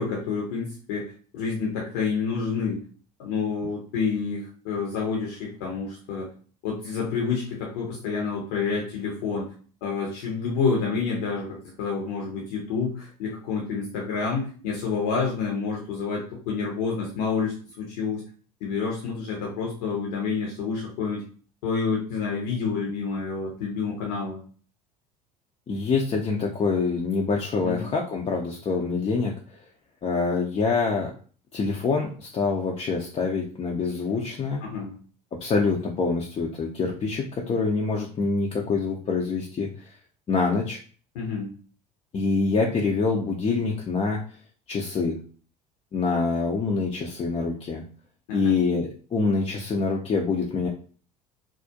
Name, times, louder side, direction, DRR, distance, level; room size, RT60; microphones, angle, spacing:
voice 1, 0.0-2.8 3.2-6.3 6.6-9.5 9.8-18.2 18.6-21.2 21.6-24.4 27.6-27.9 34.6-35.0 41.1-41.5 48.3-48.6, left 5 dB, 70° left, -2 dB, 0.7 m, -28 dB
voice 2, 25.7-29.3 30.0-31.1 31.5-34.6 35.3-39.7 40.3-40.8 42.1-44.2 44.7-45.2 45.9-47.8 48.3-50.7, left 4 dB, 30° left, -1 dB, 0.5 m, -25 dB
2.3 x 2.0 x 2.7 m, 0.41 s
hypercardioid pair, 70°, 20 cm